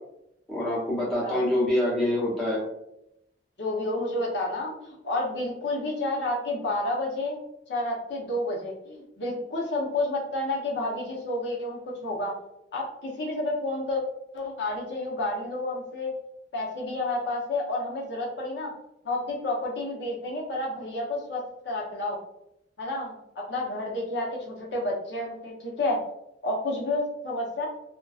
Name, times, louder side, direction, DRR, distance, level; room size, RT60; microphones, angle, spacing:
voice 1, 0.5-2.6, left 1 dB, 5° left, -9 dB, 0.7 m, -25 dB
voice 2, 3.6-7.4 7.7-12.3 12.7-14.0 14.3-16.1 16.5-18.7 19.0-22.2 22.8-23.2 23.5-26.0 26.4-27.7, left 2 dB, 70° left, -2 dB, 0.7 m, -30 dB
2.5 x 2.2 x 2.3 m, 0.82 s
head